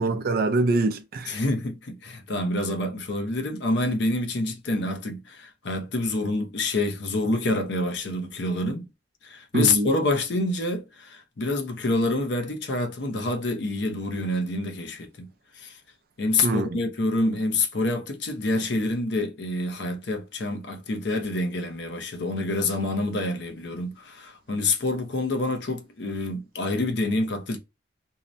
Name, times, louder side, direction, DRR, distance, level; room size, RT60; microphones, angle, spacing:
voice 1, 0.0-1.4 9.5-9.9 16.4-16.8, right 2 dB, 50° right, 0.4 m, -24 dB
voice 2, 1.3-8.9 9.2-15.3 15.5-15.8 16.2-27.6, left 2 dB, 65° left, 0.6 m, -27 dB
2.7 x 2.1 x 2.5 m
head